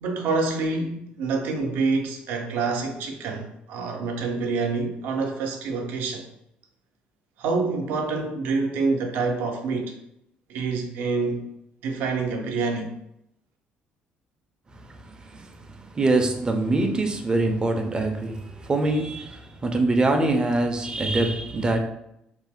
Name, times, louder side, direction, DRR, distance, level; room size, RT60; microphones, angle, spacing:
voice 1, 0.0-6.2 7.4-9.9 10.5-11.4 11.8-12.9, right 4 dB, 80° right, 0.5 m, -27 dB
voice 2, 15.9-21.8, right 2 dB, 25° right, 0.4 m, -23 dB
2.5 x 2.1 x 3.4 m
cardioid pair, 115°, 3 cm